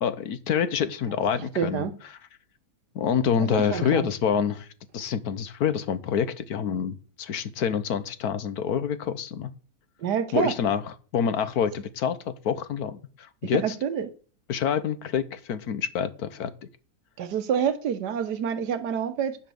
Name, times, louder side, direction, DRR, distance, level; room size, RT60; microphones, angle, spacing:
voice 1, 0.0-1.8 2.9-4.7 4.9-9.5 10.3-10.8 11.1-13.7 14.5-16.5, left 7 dB, 65° left, 1.3 m, -27 dB
voice 2, 1.6-1.9 3.5-4.1 10.0-10.5 13.4-14.1 17.2-19.4, right 7 dB, 75° right, 1.7 m, -27 dB
9.8 x 7.3 x 7.0 m
omnidirectional pair, 1.8 m